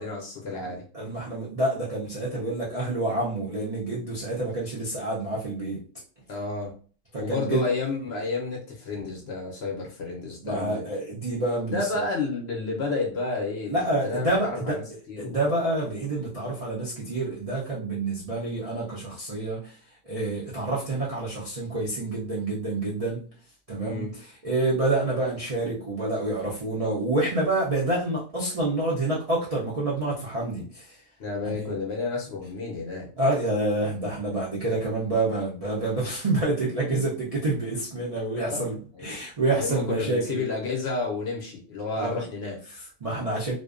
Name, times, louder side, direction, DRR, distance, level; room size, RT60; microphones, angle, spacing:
voice 1, 0.0-0.8 6.3-6.7 7.2-10.9 11.7-15.4 23.7-24.1 31.2-33.1 38.4-39.2 39.5-42.6, left 3 dB, 60° left, -1 dB, 0.7 m, -31 dB
voice 2, 0.9-5.8 7.1-7.6 10.4-12.1 13.7-14.8 15.2-19.8 20.1-23.2 23.7-31.0 31.4-31.8 33.2-40.4 42.0-42.2 42.7-43.5, right 2 dB, 70° right, -6 dB, 0.3 m, -28 dB
2.5 x 2.1 x 2.4 m, 0.41 s
omnidirectional pair, 1.5 m